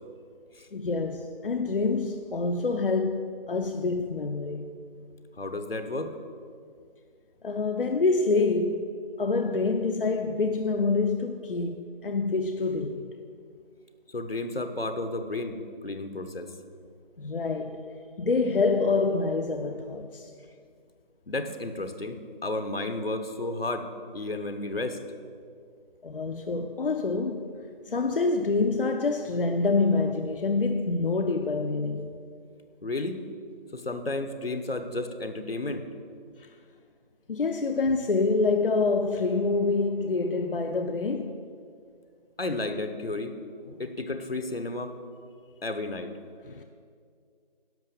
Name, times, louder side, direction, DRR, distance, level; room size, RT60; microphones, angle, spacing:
voice 1, 0.7-4.7 7.4-8.9 9.2-13.1 17.2-17.9 18.2-20.3 26.0-27.6 27.8-32.1 36.4-36.5 37.3-41.4 43.7-43.8 46.4-46.6, left 3 dB, 65° left, 0.6 m, -26 dB
voice 2, 5.4-6.2 14.1-15.6 15.8-16.5 21.3-23.9 24.1-25.0 32.8-33.2 33.7-35.9 42.4-43.3 43.8-44.9 45.6-46.1, left 2 dB, 85° left, 1.1 m, -32 dB
11.0 x 6.1 x 6.8 m
figure-of-eight pair, 165°, 29 cm